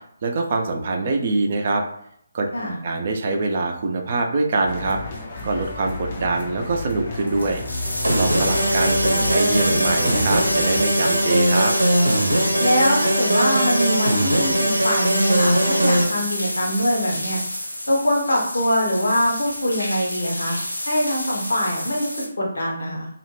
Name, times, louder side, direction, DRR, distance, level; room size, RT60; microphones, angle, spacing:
voice 1, 0.2-1.8 2.3-2.5 2.8-5.0 5.4-7.6 8.1-11.7, right 3 dB, 40° right, 2 dB, 0.4 m, -24 dB
sound 1, 4.7-10.8, left 2 dB, 35° left, 0.5 m, -32 dB
sound 2, 7.1-22.3, left 1 dB, 85° left, 0.6 m, -29 dB
sound 3, 8.0-16.0, right 1 dB, 90° right, 0.6 m, -20 dB
voice 2, 12.6-17.4 17.9-20.5 20.9-23.1, equal, 70° left, -2 dB, 0.9 m, -23 dB
2.4 x 2.0 x 3.1 m, 0.70 s
figure-of-eight pair, 145°, 0 cm